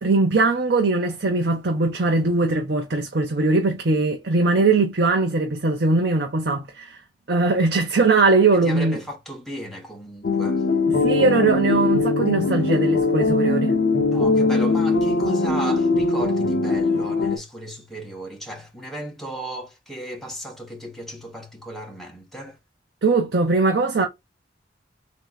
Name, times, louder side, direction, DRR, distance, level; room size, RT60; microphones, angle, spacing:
voice 1, 0.0-7.0 7.3-9.0 10.9-13.8 23.0-24.1, right 3 dB, 60° right, 0.7 m, -20 dB
voice 2, 8.5-10.6 14.1-22.6, right 1 dB, ahead, 1.1 m, -35 dB
sound 1, 10.2-17.4, left 3 dB, 60° left, 0.8 m, -21 dB
3.7 x 2.7 x 3.9 m
head